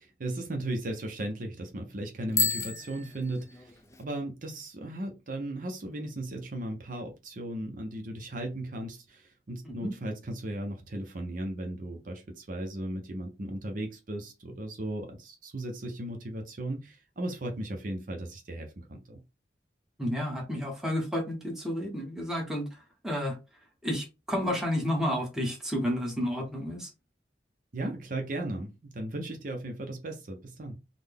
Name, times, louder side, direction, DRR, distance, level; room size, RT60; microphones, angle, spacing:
voice 1, 0.0-19.2 27.7-30.8, right 1 dB, 50° right, 4 dB, 0.6 m, -36 dB
Bicycle bell, 2.3-4.0, left 3 dB, 15° left, 0.3 m, -31 dB
voice 2, 20.0-23.4 23.8-26.9, equal, 5° right, 0 dB, 0.9 m, -31 dB
3.8 x 2.1 x 3.4 m, 0.27 s
head